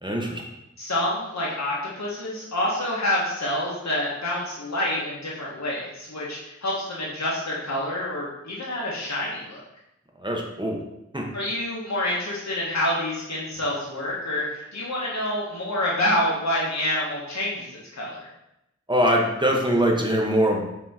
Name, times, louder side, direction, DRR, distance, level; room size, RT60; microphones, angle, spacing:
voice 1, 0.0-0.4 10.2-10.8 11.1-11.3 18.9-20.6, equal, 15° right, 0 dB, 0.9 m, -22 dB
voice 2, 0.8-9.6 11.3-18.3, left 1 dB, 70° left, -5 dB, 1.0 m, -27 dB
5.2 x 2.8 x 3.5 m, 0.87 s
wide cardioid pair, 40°, 29 cm